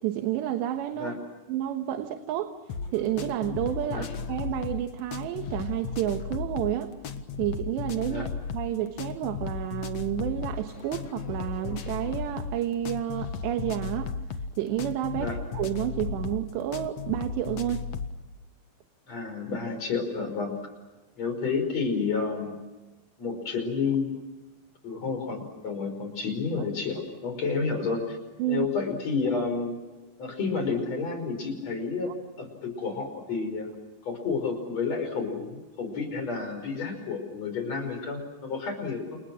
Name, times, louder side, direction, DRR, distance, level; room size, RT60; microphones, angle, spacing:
voice 1, 0.0-1.1 1.5-2.5 2.9-6.9 7.4-8.3 8.5-14.1 14.6-17.9 28.4-28.7, right 12 dB, 80° right, 7 dB, 3.5 m, -30 dB
sound 1, 2.7-18.2, left 5 dB, 60° left, 1.7 m, -35 dB
voice 2, 19.1-20.6 21.2-22.6 23.2-24.1 24.8-28.2 28.5-29.7 30.2-32.1 32.4-33.7 34.0-39.2, left 4 dB, 35° left, 7 dB, 6.2 m, -30 dB
29.5 x 29.5 x 6.2 m, 1.1 s
omnidirectional pair, 5.1 m